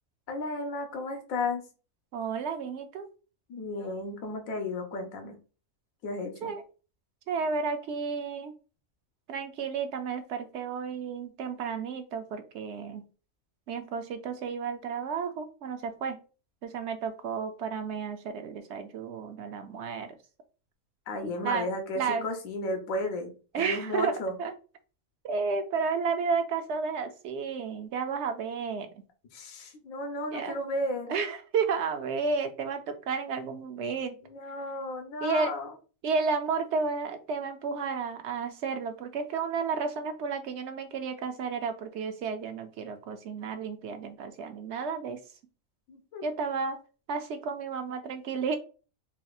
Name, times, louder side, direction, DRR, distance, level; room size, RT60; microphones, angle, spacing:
voice 1, 0.3-1.6 3.5-5.4 6.0-6.5 21.1-24.3 29.3-31.2 34.2-35.7 45.9-46.2, left 2 dB, 80° left, 3 dB, 1.2 m, -34 dB
voice 2, 2.1-3.1 6.4-6.6 7.3-8.5 9.3-13.0 13.7-16.2 16.6-20.1 21.4-21.7 22.0-22.3 23.5-24.5 25.2-28.9 30.3-30.6 31.1-34.2 35.2-35.6 36.0-45.2 46.2-46.8 47.1-48.6, right 5 dB, 65° right, 8 dB, 0.7 m, -32 dB
4.1 x 2.8 x 2.3 m, 0.36 s
omnidirectional pair, 1.4 m